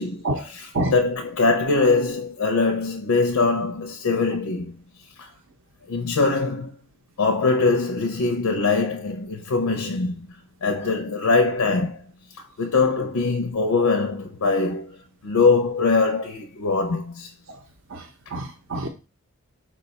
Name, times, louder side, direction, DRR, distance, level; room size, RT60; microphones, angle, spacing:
voice 1, 0.0-4.7 5.2-5.3 5.9-6.7 7.2-10.2 10.6-12.0 12.6-15.0 15.2-17.3, left 3 dB, 85° left, 0.5 m, -22 dB
voice 2, 18.3-18.9, right 1 dB, 60° right, 0.6 m, -26 dB
5.0 x 2.2 x 3.9 m
head